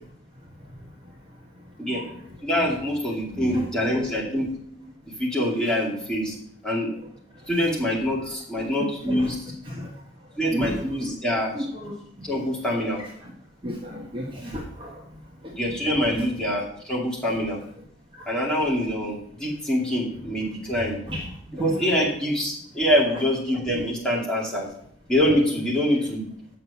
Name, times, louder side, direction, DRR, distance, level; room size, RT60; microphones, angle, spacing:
voice 1, 2.4-4.5 5.2-6.4 6.6-6.9 7.5-9.4 10.4-11.5 12.2-13.0 15.5-17.6 18.3-21.0 21.6-24.7 25.1-26.2, equal, 5° left, -5 dB, 2.5 m, -25 dB
voice 2, 3.3-3.7 9.1-9.3 9.7-9.9 10.5-10.8 11.5-11.9 13.6-15.0 15.4-15.5 18.2-18.3 21.1-21.3 21.6-21.7, equal, 25° right, -1 dB, 1.1 m, -32 dB
7.6 x 6.1 x 7.0 m, 0.67 s
head